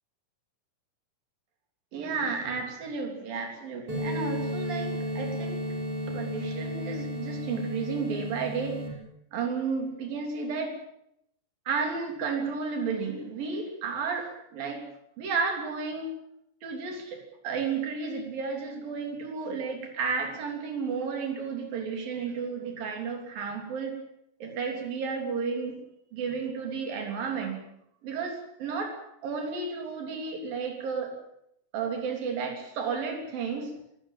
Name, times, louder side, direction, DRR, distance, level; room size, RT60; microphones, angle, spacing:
voice 1, 1.9-5.7 6.1-8.8 9.3-10.7 11.7-14.9 15.2-16.1 16.6-24.0 24.4-25.8 26.1-27.6 28.0-31.1 31.7-33.7, right 5 dB, 75° right, 2 dB, 5.1 m, -32 dB
sound 1, 3.9-8.9, equal, 40° right, 6.9 m, -33 dB
25.0 x 16.5 x 7.5 m, 0.75 s
omnidirectional pair, 4.1 m